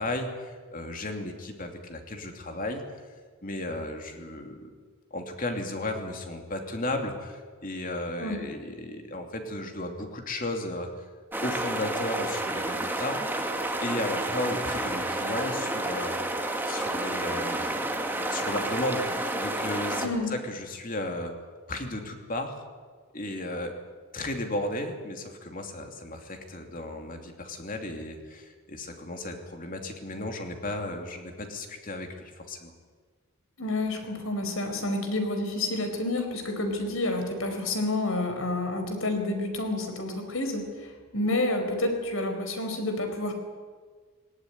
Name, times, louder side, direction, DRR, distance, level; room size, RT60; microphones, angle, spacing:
voice 1, 0.0-2.8 3.4-4.7 5.1-11.0 11.4-13.2 13.8-16.3 16.7-17.8 18.2-19.1 19.3-21.3 21.7-22.6 23.1-23.7 24.1-32.7, left 1 dB, 40° left, 4 dB, 2.7 m, -34 dB
sound 1, 11.3-20.1, right 1 dB, 10° right, 1.8 m, -30 dB
voice 2, 33.6-43.3, left 2 dB, 70° left, 5 dB, 4.6 m, -29 dB
19.0 x 18.5 x 9.8 m, 1.5 s
head